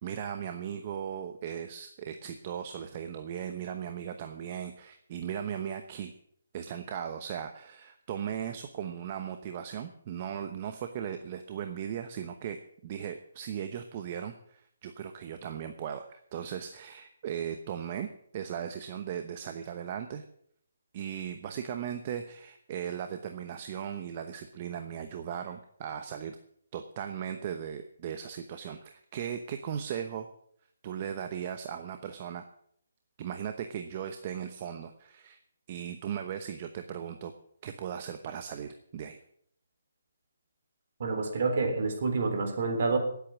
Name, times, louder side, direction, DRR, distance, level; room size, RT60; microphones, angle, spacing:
voice 1, 0.0-6.1 6.5-18.1 18.3-20.2 20.9-26.4 26.7-30.3 30.8-32.4 33.2-35.4 35.7-37.3 37.6-39.2, right 8 dB, 35° right, 7 dB, 0.9 m, -37 dB
voice 2, 41.0-43.0, right 4 dB, 50° right, 5 dB, 3.6 m, -28 dB
18.5 x 8.4 x 6.1 m, 0.66 s
hypercardioid pair, 165°, 0 cm